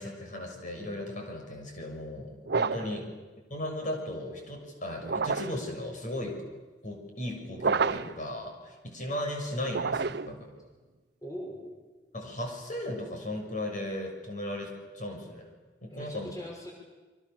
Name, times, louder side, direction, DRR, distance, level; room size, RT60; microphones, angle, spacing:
voice 1, 0.0-3.0 3.5-6.5 6.8-10.5 12.1-15.5 15.8-16.3, left 1 dB, 45° left, 2 dB, 6.6 m, -36 dB
sound 1, 2.5-3.0 5.0-5.7 7.6-8.2 9.7-10.4, right 4 dB, 65° right, 0.7 m, -29 dB
voice 2, 2.7-3.0 11.2-11.8 15.9-16.7, equal, 20° left, -1 dB, 5.8 m, -41 dB
29.5 x 24.5 x 7.1 m, 1.3 s
head